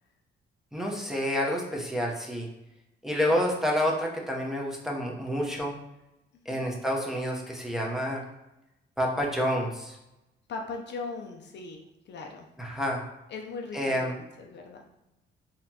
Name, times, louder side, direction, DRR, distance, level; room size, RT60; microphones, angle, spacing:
voice 1, 0.7-2.5 3.0-5.7 6.5-8.2 9.0-10.0 12.6-13.0 13.7-14.1, equal, ahead, -3 dB, 0.8 m, -28 dB
voice 2, 10.5-12.5 13.3-14.1 14.4-14.8, left 4 dB, 60° left, 2 dB, 0.6 m, -39 dB
4.1 x 2.9 x 2.8 m, 0.92 s
cardioid pair, 90°, 20 cm